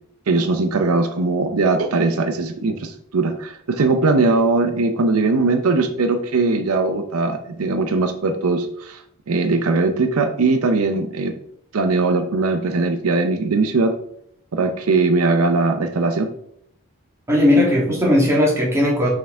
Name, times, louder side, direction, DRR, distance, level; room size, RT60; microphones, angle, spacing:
voice 1, 0.3-11.3 11.7-13.9 14.5-16.3, right 3 dB, 75° right, 7 dB, 0.6 m, -20 dB
voice 2, 17.3-19.1, left 1 dB, 15° right, -4 dB, 1.9 m, -17 dB
5.8 x 4.4 x 3.7 m, 0.70 s
head